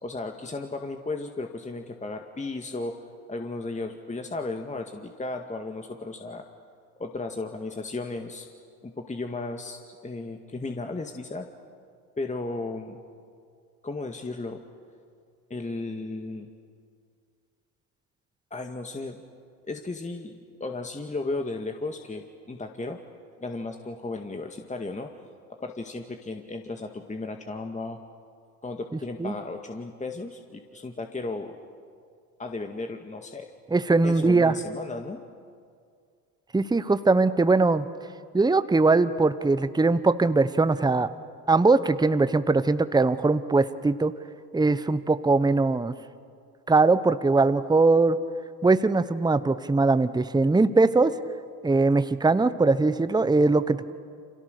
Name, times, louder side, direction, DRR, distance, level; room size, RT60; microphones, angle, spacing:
voice 1, 0.0-3.0 3.3-6.4 7.0-8.5 8.8-11.5 12.2-13.0 13.8-14.6 15.5-16.5 18.5-19.2 19.7-23.0 23.4-25.1 25.5-28.0 28.6-31.6 32.4-33.5 34.0-35.2, left 3 dB, 15° left, 4 dB, 2.0 m, -35 dB
voice 2, 33.7-34.5 36.5-37.8 38.3-41.1 41.5-44.1 44.5-45.9 46.7-48.2 48.6-51.1 51.6-53.9, right 3 dB, 10° right, 13 dB, 1.1 m, -21 dB
29.5 x 27.5 x 6.7 m, 2.2 s
hypercardioid pair, 70°, 47 cm